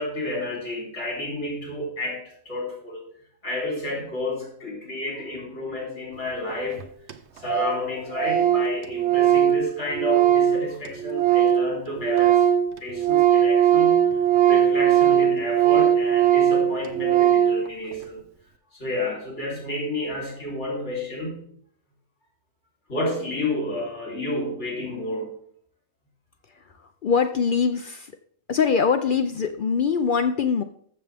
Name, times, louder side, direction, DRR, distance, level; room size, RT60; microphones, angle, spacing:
voice 1, 0.0-3.0 3.4-6.9 7.4-12.5 12.8-14.0 14.5-18.2 18.7-21.4 22.9-25.3, left 2 dB, 90° left, -2 dB, 3.8 m, -30 dB
Organ, 6.5-6.6 6.8-6.9 7.1-7.2 7.4-7.8 8.1-11.7 12.0-17.6, right 10 dB, 75° right, 1.0 m, -19 dB
voice 2, 27.0-28.1 28.5-30.6, left 6 dB, 55° left, 8 dB, 0.6 m, -22 dB
14.0 x 6.8 x 3.4 m, 0.62 s
omnidirectional pair, 1.2 m